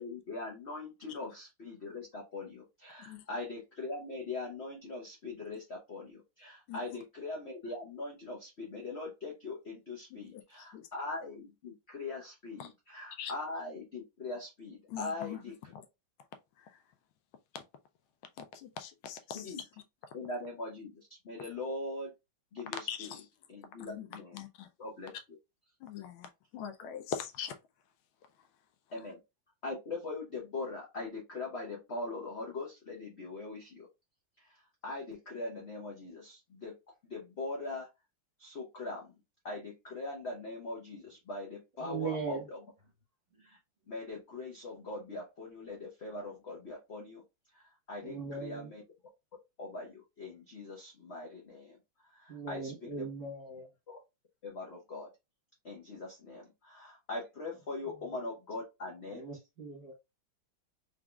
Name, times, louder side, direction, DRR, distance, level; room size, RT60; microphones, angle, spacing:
voice 1, 0.0-15.5 19.3-19.6 20.1-22.1 22.5-23.1 23.5-24.4 24.8-25.1 28.9-29.2 29.6-33.9 34.4-36.8 37.0-37.9 38.4-39.2 39.4-42.6 43.4-43.6 43.9-47.2 47.5-48.8 49.6-51.8 52.0-53.0 54.4-55.1 55.6-59.2, left 2 dB, 60° left, 0.6 m, -41 dB
voice 2, 6.7-7.0 10.1-10.4 10.7-10.9 12.6-12.7 13.2-13.3 14.9-15.4 15.7-15.9 16.6-16.8 17.5-17.6 18.4-19.6 22.9-23.3 23.8-24.7 25.8-27.6, left 8 dB, 80° left, 1.4 m, -42 dB
voice 3, 41.8-42.5 48.0-48.7 52.3-53.7 59.1-59.9, right 4 dB, 45° right, 1.2 m, -39 dB
3.8 x 3.5 x 2.2 m
omnidirectional pair, 2.3 m